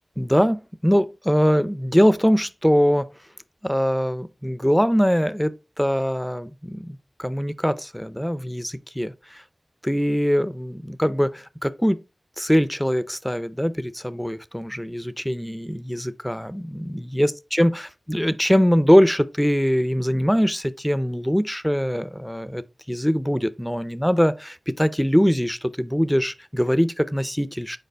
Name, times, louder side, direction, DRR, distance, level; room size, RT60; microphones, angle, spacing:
voice 1, 0.2-3.1 3.6-9.4 9.8-12.0 12.4-27.8, equal, 5° left, 0.5 m, -22 dB
6.6 x 4.8 x 3.4 m
wide cardioid pair, 75°, 0 cm